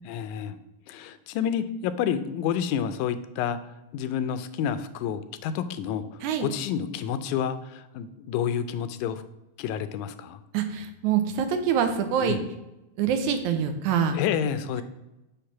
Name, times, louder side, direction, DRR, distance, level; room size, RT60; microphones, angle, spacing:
voice 1, 0.1-0.6 0.9-3.6 3.9-9.2 9.6-10.4 12.2-12.4 14.1-14.8, left 8 dB, 90° left, 11 dB, 2.0 m, -29 dB
voice 2, 10.5-12.4 13.0-14.2, right 7 dB, 90° right, 7 dB, 2.2 m, -25 dB
8.0 x 3.3 x 5.7 m, 0.96 s
omnidirectional pair, 3.4 m